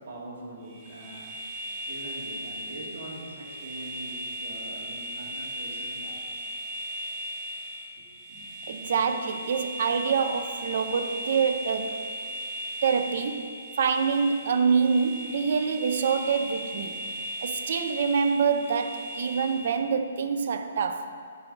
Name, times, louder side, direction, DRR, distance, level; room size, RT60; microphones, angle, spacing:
voice 1, 0.0-1.4 1.9-6.3 8.0-8.6, right 2 dB, 65° right, 1.9 m, -43 dB
sound 1, 0.6-19.9, equal, 25° right, 0.9 m, -37 dB
voice 2, 8.7-12.1 12.8-17.0 17.4-21.2, right 6 dB, 45° right, 0.5 m, -26 dB
9.1 x 5.1 x 5.1 m
hypercardioid pair, 175°, 0 cm